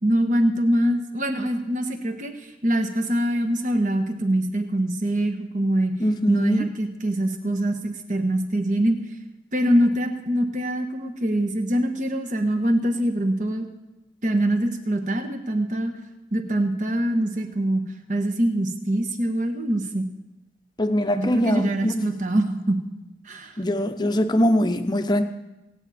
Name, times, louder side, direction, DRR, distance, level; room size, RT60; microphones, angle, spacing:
voice 1, 0.0-2.3 2.6-5.9 6.3-9.0 9.5-13.7 14.2-15.9 16.3-17.8 18.1-20.0 21.2-22.8 23.2-23.6, right 1 dB, 45° right, 6 dB, 1.3 m, -24 dB
voice 2, 6.0-6.6 20.8-22.1 23.6-25.2, left 1 dB, 25° left, 8 dB, 0.7 m, -22 dB
25.5 x 8.8 x 4.2 m, 0.98 s
head